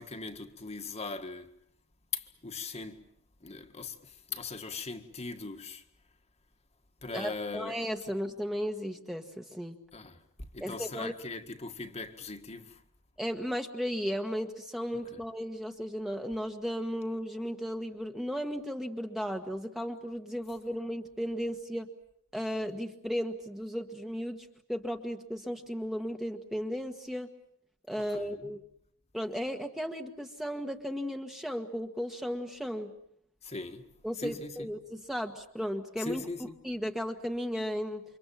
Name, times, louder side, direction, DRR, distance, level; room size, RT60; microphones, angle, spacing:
voice 1, 0.0-1.5 2.1-3.0 3.4-5.9 7.0-7.8 9.9-12.8 14.9-15.2 28.0-28.5 33.4-33.9 34.2-34.7 36.0-36.6, left 4 dB, 30° left, 1.8 m, -40 dB
voice 2, 7.1-9.8 10.6-11.1 13.2-21.9 22.3-27.3 27.9-28.6 29.1-32.9 34.0-36.2 36.6-38.0, equal, ahead, 1.5 m, -35 dB
29.5 x 25.5 x 7.3 m
head